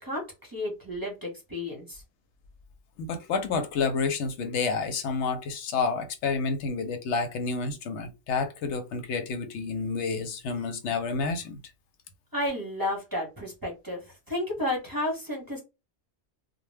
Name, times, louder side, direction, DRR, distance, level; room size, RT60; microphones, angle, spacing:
voice 1, 0.0-2.0 12.3-14.0 14.3-15.6, left 1 dB, 20° right, 0.8 m, -32 dB
voice 2, 3.0-11.6, left 4 dB, 85° left, 0.9 m, -29 dB
2.1 x 2.1 x 3.2 m
omnidirectional pair, 1.2 m